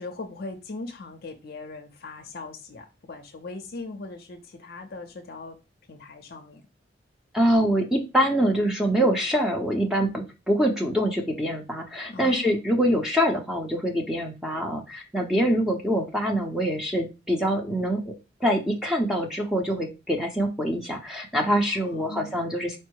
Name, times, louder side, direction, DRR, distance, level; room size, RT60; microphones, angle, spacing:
voice 1, 0.0-5.6 5.9-6.6 12.1-12.6 21.6-22.3, left 3 dB, 60° left, 4 dB, 0.5 m, -39 dB
voice 2, 7.3-18.0 18.4-22.8, equal, 5° right, 1 dB, 0.6 m, -24 dB
4.4 x 2.0 x 4.5 m, 0.28 s
head